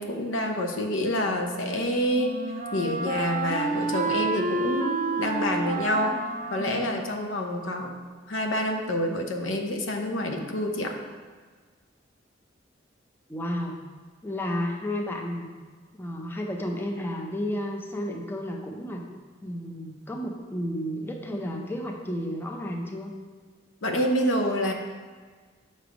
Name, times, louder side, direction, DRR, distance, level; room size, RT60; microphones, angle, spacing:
voice 1, 0.0-2.4 2.7-6.2 6.5-7.9 8.3-10.9 23.8-24.7, left 1 dB, 80° left, 3 dB, 0.7 m, -27 dB
Wind instrument woodwind instrument, 1.2-8.1, right 3 dB, 40° right, 0.5 m, -31 dB
voice 2, 13.3-13.8 14.2-15.5 16.0-19.0 19.4-23.1, equal, 10° left, 1 dB, 0.5 m, -32 dB
6.7 x 3.2 x 5.0 m, 1.5 s
head